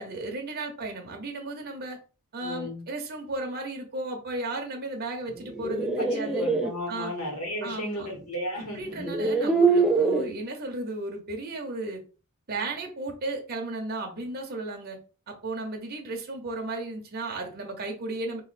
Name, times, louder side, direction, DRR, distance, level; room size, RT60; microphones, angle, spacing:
voice 1, 0.0-2.0 2.3-6.5 6.9-7.1 7.6-8.1 8.7-12.0 12.5-15.0 15.3-18.4, right 2 dB, 45° right, 2 dB, 0.7 m, -34 dB
voice 2, 2.4-2.8 6.0-9.5 12.5-12.7, left 1 dB, 80° left, -1 dB, 1.8 m, -35 dB
sound 1, 5.4-6.7 8.2-8.3 8.9-10.3, right 4 dB, 5° right, 0.3 m, -24 dB
2.9 x 2.5 x 4.0 m, 0.35 s
head